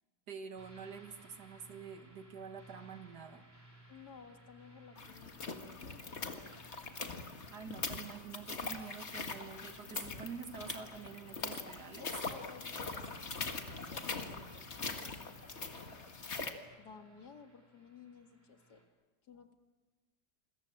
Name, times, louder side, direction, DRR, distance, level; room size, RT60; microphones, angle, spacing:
voice 1, 0.3-3.4 7.5-12.1, right 6 dB, 70° right, 8 dB, 2.1 m, -47 dB
sound 1, 0.5-18.8, right 1 dB, 10° right, 4.4 m, -61 dB
voice 2, 3.9-5.4 5.7-6.3 11.9-15.8 16.8-18.8 19.2-19.5, left 6 dB, 70° left, 6 dB, 2.5 m, -56 dB
sound 2, 5.0-16.5, left 4 dB, 40° left, 2.0 m, -42 dB
28.0 x 22.0 x 7.7 m, 1.2 s
omnidirectional pair, 1.8 m